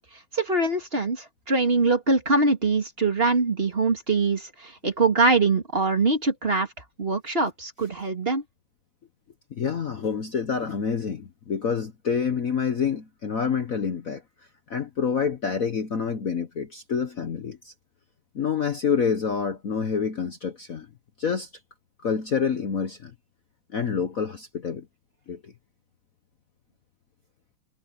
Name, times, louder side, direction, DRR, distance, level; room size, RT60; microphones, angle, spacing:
voice 1, 0.3-8.4, right 3 dB, 30° right, 2.5 m, -23 dB
voice 2, 9.5-14.2 14.7-17.7 18.3-20.9 21.2-21.5 22.0-23.1 23.7-24.9 25.3-25.5, left 6 dB, 50° left, 1.3 m, -27 dB
omnidirectional pair, 2.3 m